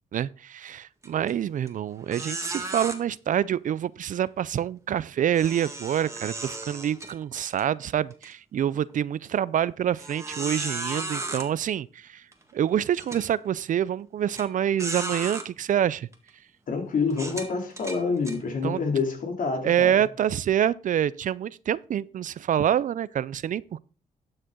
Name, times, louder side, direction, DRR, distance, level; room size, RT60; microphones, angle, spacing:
voice 1, 0.1-12.2 12.5-16.1 18.6-18.8 19.6-23.8, right 10 dB, 55° right, 0.5 m, -26 dB
sound 1, 1.0-1.3 1.7-1.8 2.1-3.0 5.3-7.6 8.1-8.3 8.9-9.0 10.0-11.5 12.3-12.4 13.0-13.2 14.3-14.4 14.8-15.5 16.1-16.3 17.1-18.4, right 2 dB, 20° right, 1.9 m, -34 dB
voice 2, 16.7-20.1, left 4 dB, 60° left, 2.7 m, -27 dB
12.0 x 6.5 x 3.8 m
cardioid pair, 75°, 16 cm